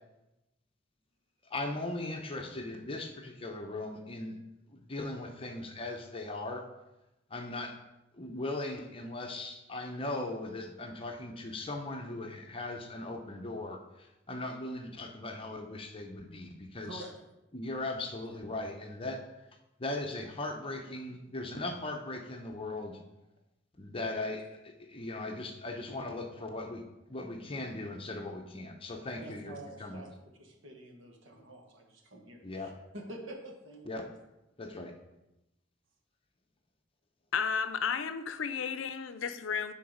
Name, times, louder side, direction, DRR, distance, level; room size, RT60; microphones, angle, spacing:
voice 1, 1.5-4.4 4.7-6.7 7.3-7.7 8.1-17.0 17.5-19.2 19.8-23.0 23.8-26.8 27.1-29.5 29.8-30.0 32.4-32.7 33.9-34.0 34.6-34.9, left 2 dB, 30° left, 3 dB, 0.8 m, -38 dB
voice 2, 16.8-17.1 18.2-18.4 29.1-30.1 30.4-34.0, right 1 dB, 80° right, 2 dB, 1.4 m, -47 dB
voice 3, 37.3-39.7, left 6 dB, 90° left, 11 dB, 0.5 m, -33 dB
10.0 x 3.9 x 5.0 m, 0.95 s
head